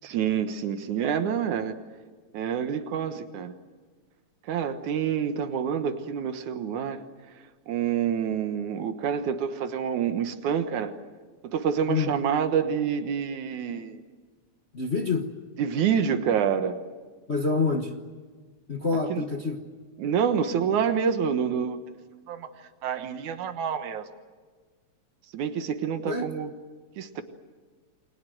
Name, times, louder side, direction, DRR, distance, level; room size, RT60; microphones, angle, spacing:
voice 1, 0.0-1.7 2.3-3.5 4.5-7.0 7.7-10.9 11.4-14.0 15.6-16.8 19.1-19.2 20.0-21.8 22.3-22.5 22.8-24.0 25.3-26.5 27.0-27.2, right 7 dB, 85° right, 8 dB, 2.8 m, -27 dB
voice 2, 14.7-15.3 17.3-17.9 18.7-19.6 26.1-26.3, left 4 dB, 40° left, 3 dB, 0.9 m, -26 dB
29.5 x 22.0 x 7.8 m, 1.5 s
omnidirectional pair, 3.3 m